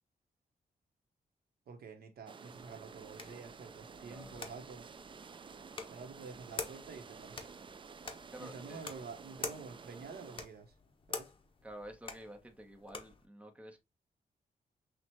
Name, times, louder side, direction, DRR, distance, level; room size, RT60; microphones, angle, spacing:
voice 1, 1.7-4.9 5.9-7.4 8.4-10.7 11.1-11.3, right 5 dB, 80° right, 1.2 m, -49 dB
sound 1, 2.3-10.5, right 5 dB, 30° right, 0.4 m, -52 dB
sound 2, 2.5-13.2, left 4 dB, 35° left, 1.1 m, -48 dB
voice 2, 4.1-4.5 8.3-8.8 11.6-13.8, right 1 dB, 10° right, 1.2 m, -50 dB
5.9 x 2.5 x 3.0 m
cardioid pair, 105°, 16 cm